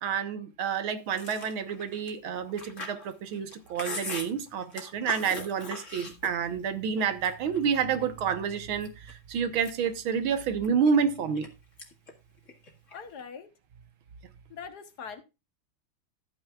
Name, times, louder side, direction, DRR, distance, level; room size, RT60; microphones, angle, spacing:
voice 1, 0.0-11.5, right 7 dB, 80° right, 1.9 m, -29 dB
Chewing mastication, 1.1-6.6 7.0-8.0 8.5-9.1 9.5-11.5 11.8-12.1 12.4-13.2, left 3 dB, 40° left, 2.3 m, -41 dB
voice 2, 12.9-13.5 14.5-15.2, left 6 dB, 55° left, 1.6 m, -42 dB
13.5 x 9.0 x 2.4 m
omnidirectional pair, 2.2 m